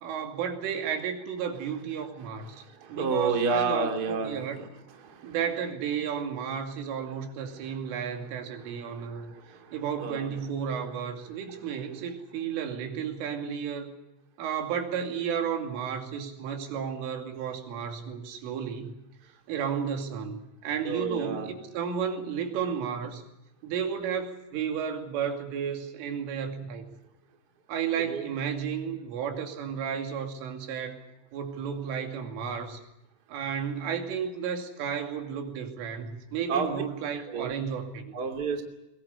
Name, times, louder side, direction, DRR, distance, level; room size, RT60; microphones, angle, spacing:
voice 1, 0.0-4.6 5.2-9.3 9.7-13.9 14.4-19.0 19.2-23.2 23.6-26.9 27.7-31.0 31.3-32.8 33.3-38.2, right 7 dB, 90° right, 5 dB, 5.2 m, -33 dB
voice 2, 2.5-4.7 5.0-5.3 9.0-9.7 10.0-10.3 20.8-21.5 28.1-28.2 36.5-36.7 37.3-37.5 38.1-38.6, right 4 dB, 25° right, 4 dB, 2.4 m, -30 dB
22.5 x 21.5 x 8.2 m, 0.92 s
omnidirectional pair, 5.6 m